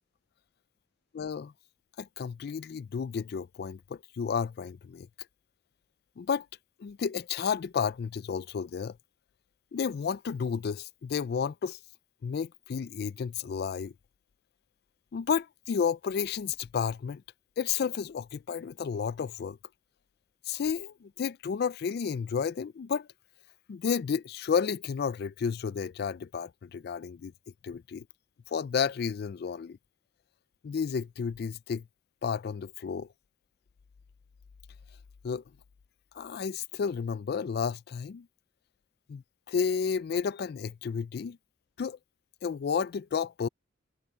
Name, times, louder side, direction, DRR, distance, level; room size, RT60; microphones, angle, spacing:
voice 1, 1.1-1.5 2.0-5.1 6.2-6.5 6.8-9.0 9.7-11.8 12.2-13.9 15.1-17.2 17.6-19.6 20.5-23.1 23.7-27.3 27.6-28.0 28.5-29.8 30.6-31.8 32.2-33.1 35.2-35.4 36.1-38.3 39.1-41.4 41.8-42.0 42.4-43.5, left 6 dB, 55° left, 0.3 m, -32 dB
head